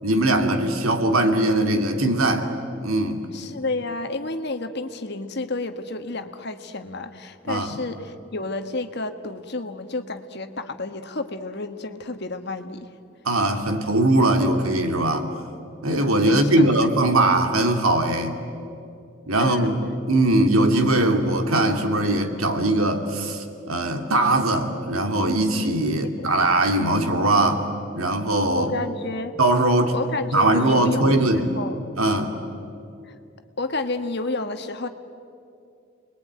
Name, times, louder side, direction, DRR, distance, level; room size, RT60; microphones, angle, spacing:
voice 1, 0.0-2.5 2.8-3.2 7.5-7.7 13.2-15.3 15.8-18.4 19.3-19.8 20.1-27.6 27.9-28.7 29.4-29.9 30.3-31.5 32.0-32.3, right 1 dB, 90° right, 5 dB, 2.4 m, -20 dB
voice 2, 3.3-12.9 16.2-16.9 19.4-19.7 26.2-26.3 28.6-29.3 29.9-31.8 33.0-33.1 33.6-34.9, left 2 dB, 50° left, 8 dB, 1.5 m, -30 dB
29.5 x 21.5 x 9.5 m, 2.5 s
head